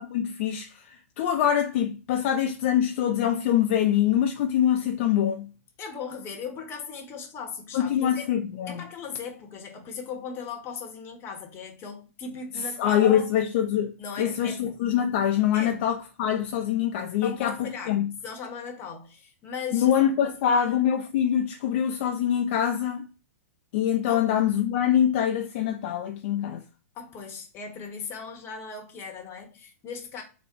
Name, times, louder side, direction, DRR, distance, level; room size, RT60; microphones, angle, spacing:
voice 1, 0.0-5.5 7.7-8.8 12.8-18.1 19.7-23.1 23.7-26.6, left 9 dB, 50° left, 0.4 m, -24 dB
voice 2, 5.8-8.3 8.7-13.2 14.0-14.8 15.5-15.8 17.2-19.9 20.2-20.7 24.1-24.2 26.9-30.2, left 6 dB, 30° left, 0.9 m, -38 dB
3.5 x 2.1 x 4.3 m
hypercardioid pair, 130°, 8 cm